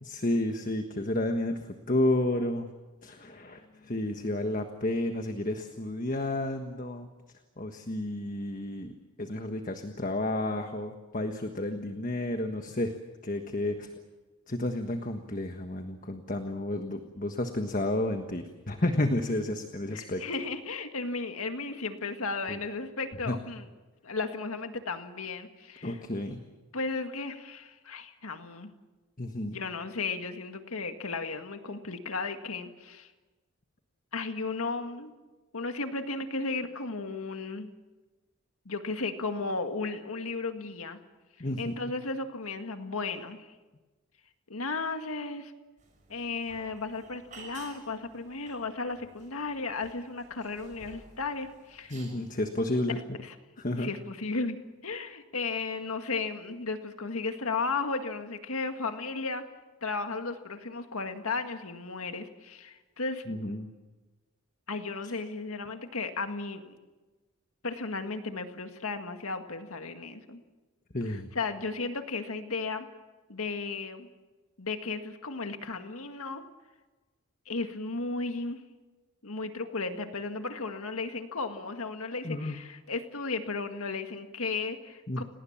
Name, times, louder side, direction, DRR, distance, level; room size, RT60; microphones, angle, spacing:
voice 1, 0.0-2.7 3.0-7.1 7.6-13.0 13.2-13.9 14.5-20.2 22.5-22.6 23.3-23.4 25.8-26.4 29.2-29.6 41.4-41.9 51.9-53.0 53.6-53.9 63.3-63.7 70.9-71.3 82.2-82.6 85.1-85.2, left 1 dB, 40° left, 6 dB, 1.4 m, -31 dB
voice 2, 19.9-23.7 24.0-26.0 26.7-28.7 29.5-33.1 34.1-35.1 35.5-37.7 38.7-41.0 41.4-43.5 44.5-45.5 46.1-52.0 53.2-53.4 53.8-59.4 59.8-63.2 64.7-66.8 67.6-70.4 71.1-72.9 73.3-74.1 74.6-76.5 77.5-78.6 79.2-85.2, left 3 dB, 85° left, 7 dB, 1.9 m, -35 dB
sound 1, 45.8-52.4, right 3 dB, 35° right, 5.9 m, -53 dB
30.0 x 19.0 x 7.4 m, 1.2 s
head